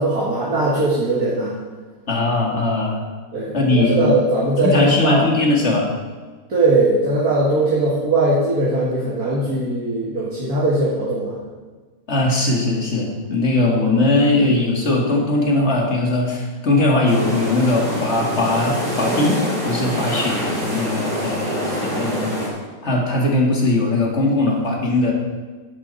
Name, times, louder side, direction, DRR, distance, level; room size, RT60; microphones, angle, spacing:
voice 1, 0.0-1.6 3.3-5.2 6.5-11.4 20.0-20.2 25.0-25.1, right 2 dB, 75° right, -7 dB, 2.6 m, -20 dB
voice 2, 2.1-3.0 3.5-4.2 4.6-5.9 12.1-22.4 22.8-25.1, left 2 dB, 50° left, -1 dB, 2.4 m, -20 dB
sound 1, 17.1-22.5, equal, 30° right, 4.6 m, -25 dB
11.0 x 10.5 x 4.1 m, 1.3 s
omnidirectional pair, 1.6 m